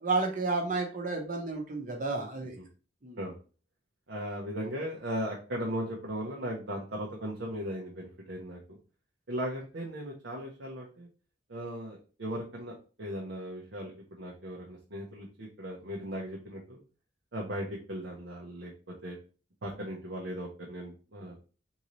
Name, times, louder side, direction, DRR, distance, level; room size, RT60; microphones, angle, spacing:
voice 1, 0.0-2.5 3.0-3.2, right 3 dB, 45° right, 2 dB, 0.8 m, -31 dB
voice 2, 4.1-8.8 9.3-11.1 11.5-16.8 17.3-19.2 19.6-21.4, equal, 80° right, -3 dB, 0.7 m, -37 dB
3.8 x 2.7 x 3.0 m, 0.36 s
head